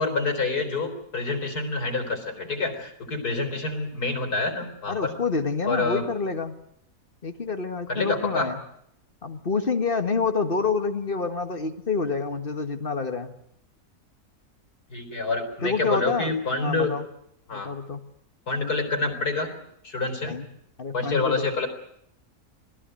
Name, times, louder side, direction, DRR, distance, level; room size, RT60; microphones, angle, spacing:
voice 1, 0.0-5.1 5.7-6.1 7.9-8.5 14.9-16.9 17.5-17.7 18.5-19.5 19.8-20.4 20.9-21.7, left 3 dB, 90° left, 6 dB, 4.6 m, -27 dB
voice 2, 4.9-6.6 7.2-8.6 9.2-13.3 15.6-16.3 16.6-17.1 17.5-18.0 20.2-20.5 20.8-21.5, left 4 dB, 35° left, 7 dB, 1.9 m, -27 dB
26.0 x 18.5 x 7.8 m, 0.73 s
omnidirectional pair, 1.6 m